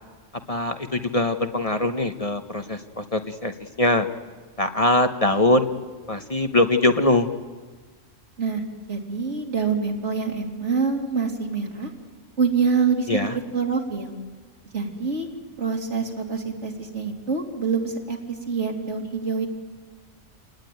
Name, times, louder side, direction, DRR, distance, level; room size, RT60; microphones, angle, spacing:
voice 1, 0.5-4.1 4.6-5.7 6.1-7.3 13.1-13.4, left 2 dB, 35° left, 7 dB, 0.9 m, -22 dB
voice 2, 8.9-11.9 12.4-13.2 13.5-14.1 14.7-15.3 15.6-19.5, right 5 dB, 70° right, 2 dB, 3.2 m, -25 dB
29.0 x 18.5 x 9.3 m, 1.4 s
omnidirectional pair, 1.2 m